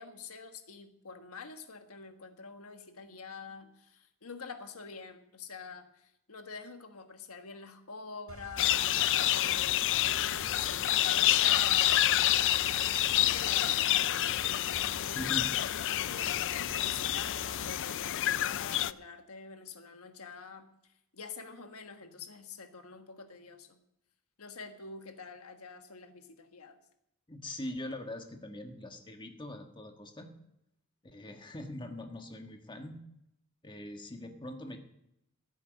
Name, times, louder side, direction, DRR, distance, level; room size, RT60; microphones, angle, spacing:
voice 1, 0.0-8.9 9.3-12.6 13.0-15.2 15.8-23.8 24.4-26.8, left 4 dB, 85° left, 7 dB, 1.4 m, -47 dB
sound 1, 8.3-17.9, right 2 dB, 80° right, 4.3 m, -50 dB
sound 2, 8.6-18.9, left 13 dB, 60° left, 0.4 m, -28 dB
voice 2, 15.1-15.5 27.3-30.3 31.0-33.0 33.6-34.8, left 1 dB, 20° left, 5 dB, 1.4 m, -42 dB
14.5 x 8.5 x 6.3 m, 0.82 s
head